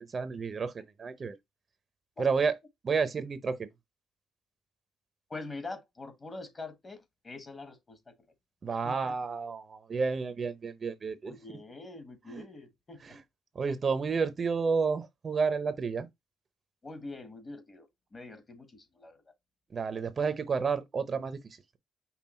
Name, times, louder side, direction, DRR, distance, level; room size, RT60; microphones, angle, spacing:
voice 1, 0.1-1.3 2.2-2.6 2.8-3.7 8.6-11.6 12.3-12.4 13.0-13.2 13.5-16.1 19.7-21.8, right 5 dB, 40° right, 0.6 m, -31 dB
voice 2, 5.3-8.1 8.8-9.1 11.2-13.0 16.8-19.2, left 3 dB, 30° left, 1.4 m, -44 dB
5.6 x 2.3 x 4.2 m
cardioid pair, 90°, 0 cm